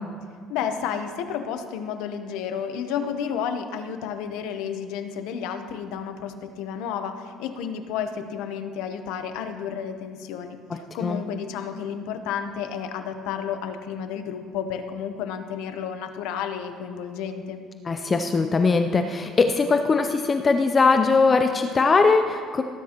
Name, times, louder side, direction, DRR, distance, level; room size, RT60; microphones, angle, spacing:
voice 1, 0.5-17.6, left 7 dB, 85° left, 8 dB, 0.9 m, -31 dB
voice 2, 10.7-11.2 17.9-22.6, left 4 dB, 25° left, 7 dB, 0.5 m, -21 dB
19.0 x 10.0 x 3.0 m, 2.1 s
cardioid pair, 120°, 0 cm